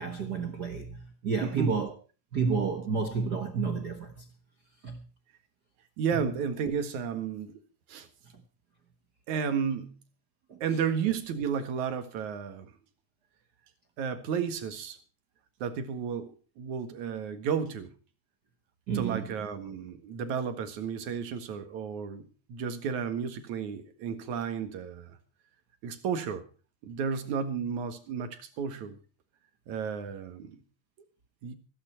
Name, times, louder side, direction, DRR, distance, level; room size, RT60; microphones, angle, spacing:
voice 1, 0.0-1.9 2.3-4.3 4.8-5.0 10.5-10.6 18.9-19.3, right 5 dB, 80° right, 0.9 m, -30 dB
voice 2, 1.4-1.7 6.0-7.6 7.9-8.1 9.3-9.9 10.6-12.7 14.0-15.0 15.6-17.9 18.9-25.2 25.8-26.5 26.8-29.0 29.7-30.6 31.4-31.6, right 7 dB, 60° right, 2.9 m, -32 dB
15.5 x 15.5 x 4.5 m
omnidirectional pair, 4.2 m